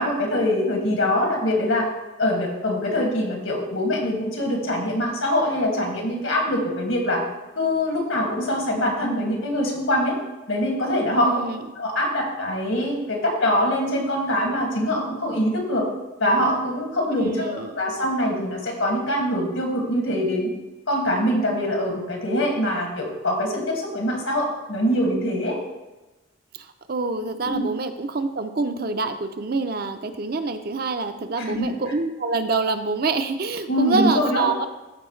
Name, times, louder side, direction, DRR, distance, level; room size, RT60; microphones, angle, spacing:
voice 1, 0.0-1.8 2.2-7.2 7.6-10.2 10.5-11.3 11.8-15.9 16.2-20.5 20.9-25.6 27.4-27.7 31.5-31.7 33.7-34.5, left 1 dB, 80° left, 0 dB, 2.1 m, -23 dB
voice 2, 11.2-11.6 17.1-17.8 26.5-34.7, right 3 dB, 50° right, 8 dB, 0.5 m, -26 dB
14.0 x 4.8 x 3.2 m, 1.1 s
head